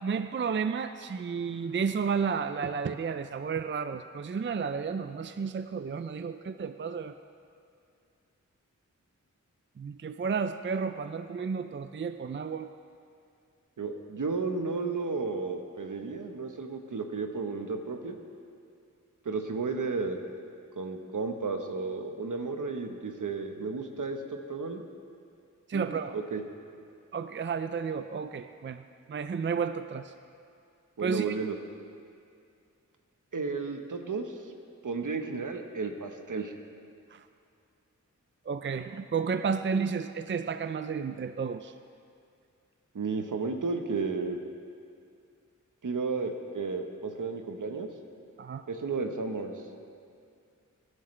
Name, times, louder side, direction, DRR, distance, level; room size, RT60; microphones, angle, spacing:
voice 1, 0.0-7.1 9.8-12.7 25.7-26.2 27.1-28.8 29.1-30.1 31.0-31.3 37.1-37.3 38.5-41.7 48.4-48.6, right 6 dB, 40° right, 10 dB, 0.4 m, -32 dB
voice 2, 13.8-18.2 19.2-20.2 20.8-24.2 24.5-24.8 25.7-26.4 31.0-31.6 33.3-34.3 34.8-36.5 42.9-44.4 45.8-47.9 48.7-49.5, right 4 dB, 75° right, 4 dB, 1.2 m, -33 dB
23.5 x 11.0 x 3.3 m, 2.4 s
wide cardioid pair, 80°, 31 cm